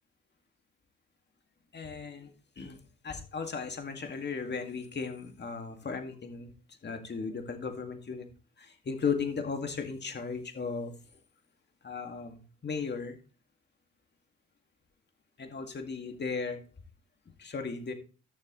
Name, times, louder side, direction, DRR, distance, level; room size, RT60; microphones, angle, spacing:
voice 1, 1.7-2.3 2.6-2.8 3.0-6.5 6.8-8.3 8.6-10.9 11.8-13.2 15.4-16.6 17.4-17.9, left 5 dB, 35° left, 4 dB, 2.1 m, -36 dB
13.5 x 6.5 x 3.1 m, 0.36 s
cardioid pair, 90°, 30 cm